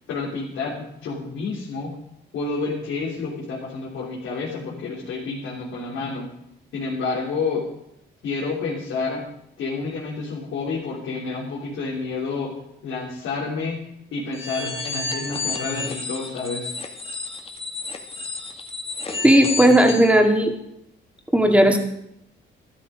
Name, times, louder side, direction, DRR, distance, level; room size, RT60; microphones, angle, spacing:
voice 1, 0.1-1.9 2.3-6.3 6.7-7.6 8.2-9.2 9.6-12.5 12.8-13.8 14.1-16.7, left 4 dB, 85° left, -5 dB, 3.4 m, -29 dB
sound 1, 14.3-20.1, left 3 dB, 30° left, 1.9 m, -31 dB
voice 2, 19.2-20.5 21.3-21.8, right 1 dB, 5° right, 3 dB, 2.3 m, -15 dB
12.5 x 12.5 x 5.0 m, 0.80 s
cardioid pair, 90°, 20 cm